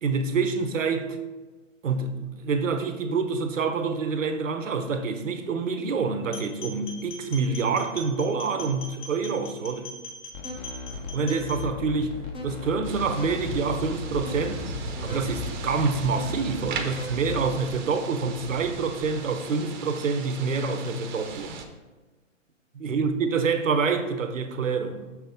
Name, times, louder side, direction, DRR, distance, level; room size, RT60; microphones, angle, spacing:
voice 1, 0.0-1.2 1.8-9.9 11.1-12.2 12.4-14.6 15.0-21.6 22.7-25.0, right 4 dB, 75° right, 0.9 m, -27 dB
sound 1, 6.2-11.6, left 2 dB, 35° left, 1.7 m, -41 dB
sound 2, 10.3-17.6, left 4 dB, 15° left, 0.8 m, -36 dB
sound 3, 12.8-21.7, right 5 dB, 35° right, 0.8 m, -38 dB
6.2 x 6.0 x 3.5 m
hypercardioid pair, 135°, 39 cm